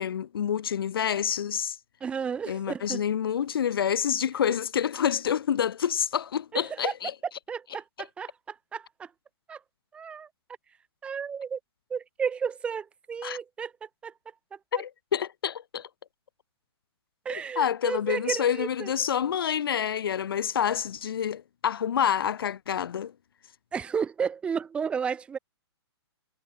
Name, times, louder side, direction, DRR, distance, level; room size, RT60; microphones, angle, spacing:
voice 1, 0.0-1.8 2.5-7.1 8.0-8.1 13.2-13.4 14.7-15.9 17.3-23.1, left 8 dB, 55° left, 4.8 m, -28 dB
voice 2, 2.0-3.0 6.5-6.9 7.5-9.1 9.5-9.6 9.9-10.3 11.0-11.6 11.9-13.7 14.0-14.1 14.5-14.6 17.2-18.9 23.7-25.4, right 6 dB, 10° right, 7.6 m, -32 dB
hypercardioid pair, 175°, 14 cm